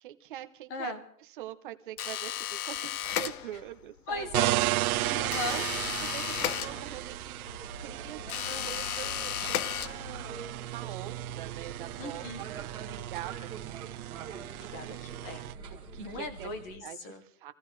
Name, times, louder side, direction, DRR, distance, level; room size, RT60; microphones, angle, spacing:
voice 1, 0.0-0.9 1.2-4.6 5.0-5.6 6.0-7.5 7.8-13.9 14.4-14.5 15.9-16.5 16.8-17.5, right 13 dB, 35° right, 9 dB, 0.8 m, -44 dB
sound 1, 2.0-3.8 5.3-7.2 8.3-10.3, left 11 dB, 80° left, 0.8 m, -34 dB
voice 2, 4.1-4.5 5.0-5.6 8.5-8.8 12.0-12.5 14.5-15.5 16.0-17.2, left 3 dB, 10° left, 10 dB, 0.5 m, -38 dB
sound 2, 4.1-16.8, right 4 dB, 10° right, 1.7 m, -45 dB
sound 3, 4.3-15.6, right 16 dB, 75° right, 0.5 m, -35 dB
26.0 x 15.0 x 3.2 m, 0.65 s
supercardioid pair, 175°, 44 cm